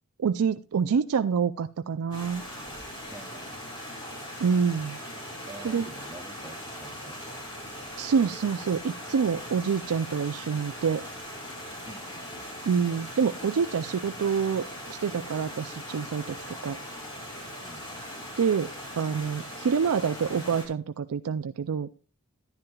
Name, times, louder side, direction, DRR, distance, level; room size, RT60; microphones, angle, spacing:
voice 1, 0.2-2.4 4.4-5.0 5.6-5.9 8.0-11.0 12.7-16.8 18.4-21.9, right 6 dB, 80° right, 12 dB, 0.4 m, -27 dB
Stream, 2.1-20.7, equal, 25° left, 4.4 m, -40 dB
voice 2, 3.1-3.7 5.4-7.2 11.8-12.3 17.6-17.8, right 2 dB, 15° right, 4 dB, 0.7 m, -46 dB
11.5 x 10.5 x 2.3 m, 0.35 s
head